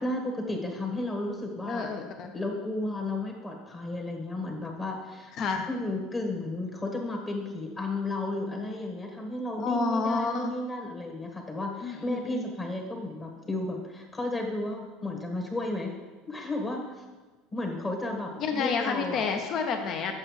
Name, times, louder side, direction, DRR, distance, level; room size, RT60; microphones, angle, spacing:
voice 1, 0.0-1.9 2.3-5.3 5.7-15.9 16.3-17.0 17.5-19.2, left 2 dB, 25° left, 1 dB, 1.6 m, -33 dB
voice 2, 1.7-2.3 5.4-5.7 9.6-10.5 11.8-12.5 18.4-20.1, left 5 dB, 50° left, 5 dB, 0.9 m, -29 dB
7.5 x 6.3 x 3.3 m, 1.2 s
hypercardioid pair, 90°, 0 cm